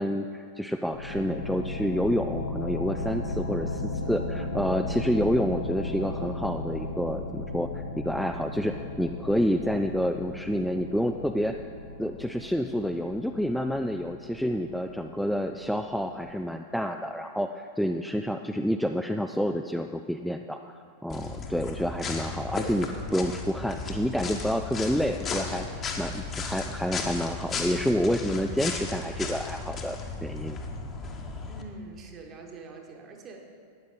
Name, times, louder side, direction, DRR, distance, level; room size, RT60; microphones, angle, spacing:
voice 1, 0.0-11.6 12.0-30.6, equal, ahead, 5 dB, 0.4 m, -29 dB
sound 1, 0.9-16.3, left 2 dB, 70° left, 1.2 m, -36 dB
sound 2, 21.1-31.6, left 4 dB, 25° left, 1.2 m, -35 dB
voice 2, 31.5-33.5, right 3 dB, 30° right, 3 dB, 1.4 m, -44 dB
12.5 x 9.4 x 4.1 m, 2.3 s
figure-of-eight pair, 90°, 0 cm